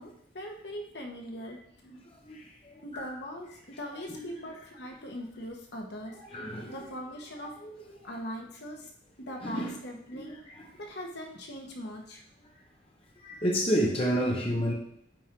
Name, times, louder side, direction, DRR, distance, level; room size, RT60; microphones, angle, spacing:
voice 1, 0.0-1.6 2.8-7.5 8.0-8.9 9.2-10.4 10.8-12.2, equal, 65° left, 0 dB, 1.4 m, -41 dB
voice 2, 2.3-2.7 4.1-4.2 6.3-6.8 7.6-7.7 9.4-9.8 10.1-10.4 13.2-14.7, equal, 30° left, -1 dB, 1.2 m, -29 dB
9.4 x 4.5 x 3.8 m, 0.70 s
head